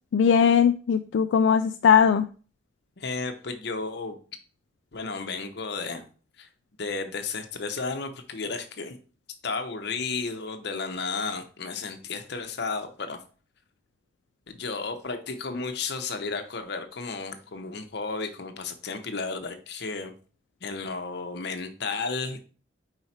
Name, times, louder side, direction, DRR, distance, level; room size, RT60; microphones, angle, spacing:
voice 1, 0.1-2.3, left 7 dB, 85° left, 8 dB, 0.3 m, -19 dB
voice 2, 3.0-4.1 4.9-6.0 6.4-6.5 6.8-9.0 9.4-13.2 14.5-20.1 20.6-22.4, left 4 dB, 65° left, 6 dB, 0.9 m, -33 dB
4.8 x 4.7 x 4.3 m, 0.39 s
head